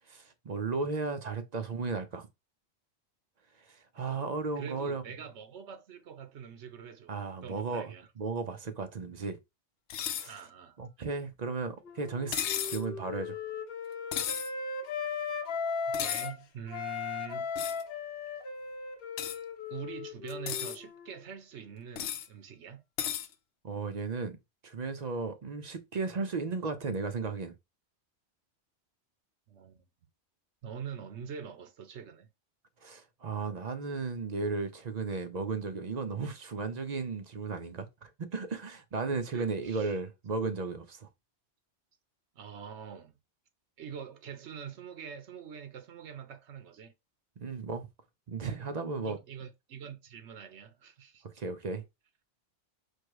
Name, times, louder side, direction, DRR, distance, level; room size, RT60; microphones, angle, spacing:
voice 1, 0.1-2.3 3.6-5.0 7.1-9.4 10.1-10.4 10.8-13.4 23.6-24.4 24.6-27.5 32.8-41.1 47.4-47.9 48.3-49.2 51.4-51.8, right 4 dB, 50° right, 0.6 m, -35 dB
voice 2, 4.6-7.1 7.4-8.1 10.3-10.8 16.0-17.5 19.7-22.8 29.5-29.8 30.6-32.3 39.3-40.0 42.3-43.2 43.8-46.9 49.0-51.2, right 7 dB, 80° right, 1.1 m, -44 dB
sound 1, 9.9-10.3 12.3-12.8 14.1-14.5 15.9-16.3 17.6-17.8 19.2-19.4 20.3-20.8 22.0-22.3 23.0-23.3, left 9 dB, 80° left, 0.9 m, -34 dB
Wind instrument woodwind instrument, 11.9-16.4 16.7-21.2, left 5 dB, 60° left, 1.0 m, -37 dB
4.6 x 2.2 x 4.7 m
omnidirectional pair, 1.2 m